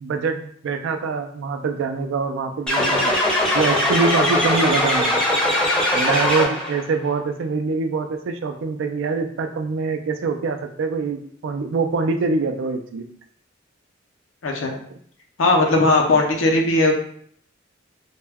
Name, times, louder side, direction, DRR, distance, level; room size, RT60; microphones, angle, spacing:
voice 1, 0.0-3.1 3.5-5.2 5.9-13.1, right 4 dB, 65° right, 7 dB, 0.3 m, -24 dB
sound 1, 2.7-6.8, left 1 dB, 5° left, 0.6 m, -20 dB
voice 2, 14.4-14.7 15.4-16.9, left 2 dB, 80° left, 2 dB, 0.5 m, -18 dB
2.2 x 2.1 x 3.3 m, 0.62 s
head